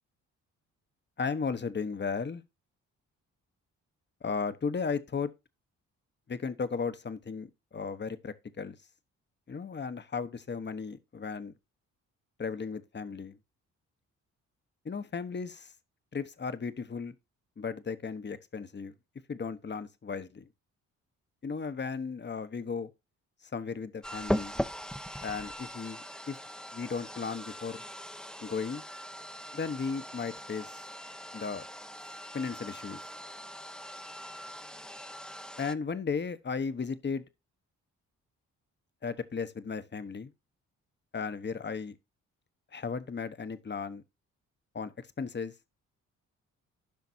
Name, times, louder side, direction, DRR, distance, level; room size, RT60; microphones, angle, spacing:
voice 1, 1.2-2.4 4.2-5.3 6.3-8.8 9.5-11.5 12.4-13.4 14.8-15.7 16.1-17.1 17.6-18.9 19.3-20.5 21.4-22.9 23.5-24.6 25.2-26.4 26.7-27.8 28.4-28.8 29.5-30.8 31.3-31.6 32.3-33.0 35.6-37.2 39.0-40.3 41.1-42.0 42.7-44.0 44.7-45.5, left 5 dB, 30° left, 1.1 m, -35 dB
sound 1, 24.0-35.7, equal, ahead, 0.8 m, -40 dB
15.5 x 5.8 x 2.7 m
hypercardioid pair, 45°, 36 cm